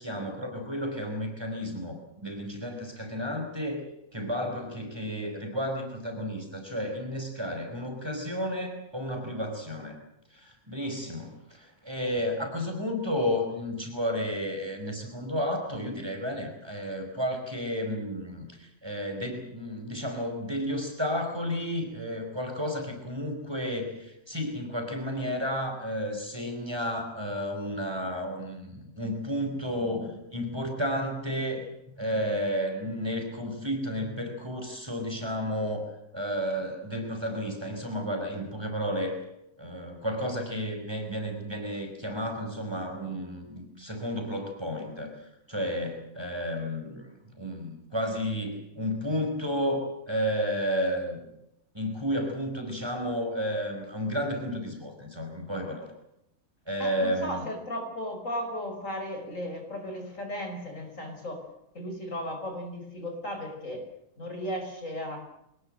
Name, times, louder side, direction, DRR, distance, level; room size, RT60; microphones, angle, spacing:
voice 1, 0.0-3.8 4.1-10.0 10.3-39.2 39.6-51.3 51.7-55.9 56.7-57.5, equal, 15° right, 3 dB, 5.2 m, -32 dB
voice 2, 56.8-61.4 61.7-63.9 64.2-65.2, equal, 55° left, 4 dB, 6.0 m, -35 dB
24.0 x 20.5 x 7.7 m, 0.80 s
omnidirectional pair, 1.6 m